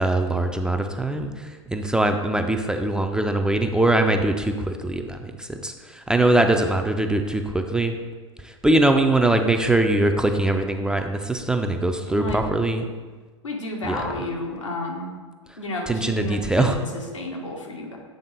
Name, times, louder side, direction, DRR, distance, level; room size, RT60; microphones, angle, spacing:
voice 1, 0.0-7.9 8.4-12.9 13.8-14.0 15.9-16.8, right 2 dB, 5° right, 5 dB, 0.3 m, -22 dB
voice 2, 12.1-12.4 12.7-12.9 13.4-15.1 15.6-18.0, left 1 dB, 85° left, -1 dB, 1.2 m, -31 dB
7.8 x 3.5 x 4.0 m, 1.4 s
figure-of-eight pair, 95°, 16 cm